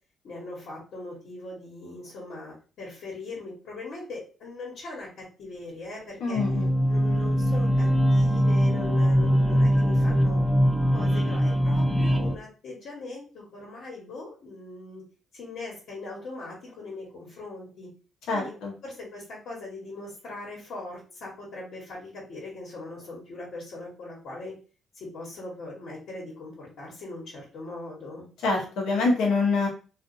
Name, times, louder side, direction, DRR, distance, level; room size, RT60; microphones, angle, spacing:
voice 1, 0.2-6.4 6.9-10.4 10.9-15.0 15.3-17.9 18.3-24.5 24.9-28.2, left 2 dB, 70° left, -4 dB, 1.1 m, -40 dB
voice 2, 6.2-6.7 18.3-18.7 28.4-29.7, left 3 dB, 85° left, 0 dB, 0.8 m, -25 dB
sound 1, 6.4-12.4, equal, ahead, 0.5 m, -22 dB
2.6 x 2.4 x 2.5 m, 0.36 s
cardioid pair, 90°, 0 cm